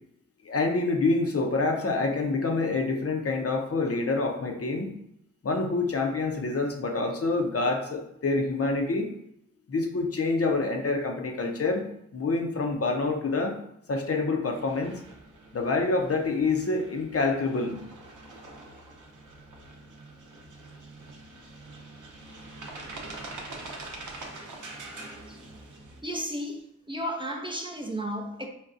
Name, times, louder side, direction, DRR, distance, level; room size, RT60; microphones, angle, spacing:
voice 1, 0.4-4.9 5.4-9.1 9.7-11.8 12.1-13.6 13.9-14.9 15.5-17.8, left 3 dB, 45° left, 0.6 m, -27 dB
sound 1, 14.5-26.0, right 2 dB, 70° right, 0.7 m, -44 dB
voice 2, 26.0-28.5, equal, 15° right, 0.5 m, -33 dB
4.0 x 2.2 x 2.4 m
cardioid pair, 40°, 32 cm